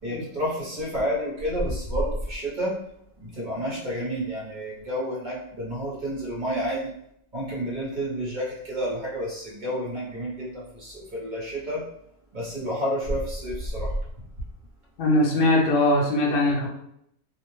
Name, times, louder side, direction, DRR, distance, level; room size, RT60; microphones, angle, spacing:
voice 1, 0.0-2.8 3.2-6.9 7.3-11.9 12.3-14.0, equal, 40° right, -5 dB, 0.9 m, -30 dB
voice 2, 15.0-16.7, left 1 dB, 60° left, -2 dB, 0.6 m, -21 dB
2.6 x 2.1 x 3.1 m, 0.73 s
omnidirectional pair, 1.5 m